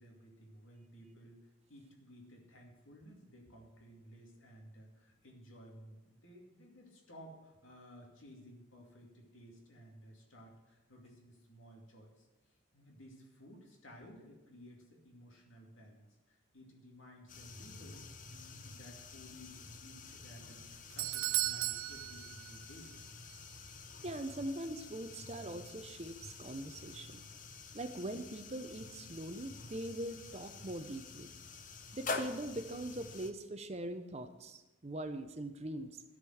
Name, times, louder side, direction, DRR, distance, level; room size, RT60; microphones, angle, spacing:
voice 1, 0.0-18.0 18.3-22.9, equal, 75° left, 0 dB, 2.5 m, -56 dB
sound 1, 17.3-33.3, left 3 dB, 40° left, 0.8 m, -48 dB
Doorbell, 20.5-23.0 23.3-23.4 24.1-24.2, right 18 dB, 80° right, 0.3 m, -37 dB
voice 2, 24.0-27.2 27.7-31.3 31.9-36.0, right 1 dB, 30° right, 9 dB, 0.6 m, -42 dB
13.0 x 5.1 x 7.8 m, 1.1 s
head